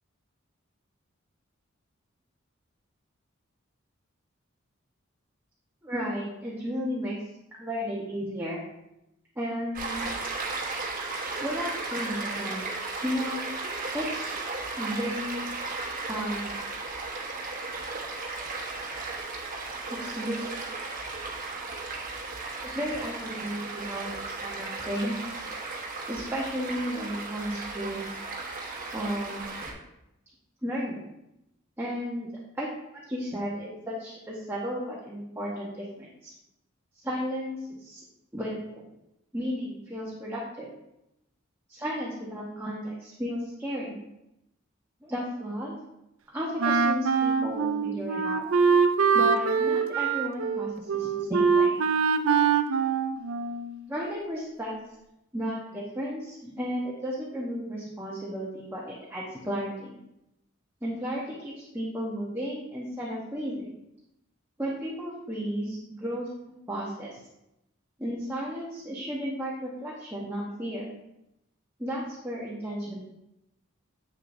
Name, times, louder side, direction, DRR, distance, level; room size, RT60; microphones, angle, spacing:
voice 1, 5.8-7.2 7.6-8.6 9.4-10.0 11.4-12.6 13.0-13.4 13.9-14.3 14.8-15.4 16.1-16.5 19.9-20.5 22.7-25.4 26.1-28.1 28.9-29.7 30.6-31.0 31.8-32.3 32.6-36.3 36.9-38.0 38.3-38.9 39.3-40.7 41.7-44.0 45.0-45.8 46.3-48.5 49.1-51.8 53.9-54.7 55.3-60.0 60.8-63.7 64.6-67.2 68.0-70.8 71.8-73.0, equal, 10° right, -5 dB, 1.0 m, -33 dB
Stream, 9.7-29.7, right 3 dB, 45° right, 1.2 m, -35 dB
Wind instrument woodwind instrument, 46.6-53.8, right 5 dB, 85° right, 0.5 m, -24 dB
8.1 x 6.4 x 2.7 m, 0.87 s
head